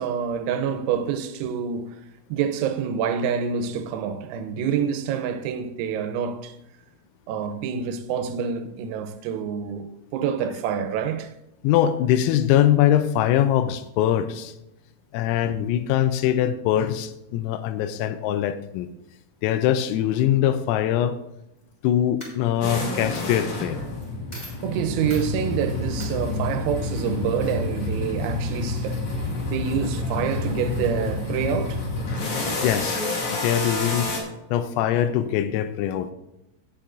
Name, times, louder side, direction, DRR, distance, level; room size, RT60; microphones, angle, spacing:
voice 1, 0.0-2.0 2.3-6.6 7.3-11.3 24.4-31.8, right 7 dB, 85° right, 3.5 m, -27 dB
voice 2, 11.6-14.5 15.1-18.9 19.4-21.2 21.8-23.8 29.4-29.5 32.2-32.3 32.6-33.1 33.3-34.1 34.5-36.1, left 11 dB, 85° left, 3.3 m, -22 dB
Coin (dropping), 21.6-21.9 22.2-22.8 23.1-23.3 24.0-24.1 24.3-24.6 25.1-25.3 26.0-26.1, equal, 10° left, 2.1 m, -41 dB
Muscle car sounds, 22.6-34.2, left 2 dB, 40° left, 3.0 m, -28 dB
16.5 x 8.5 x 2.6 m
omnidirectional pair, 6.0 m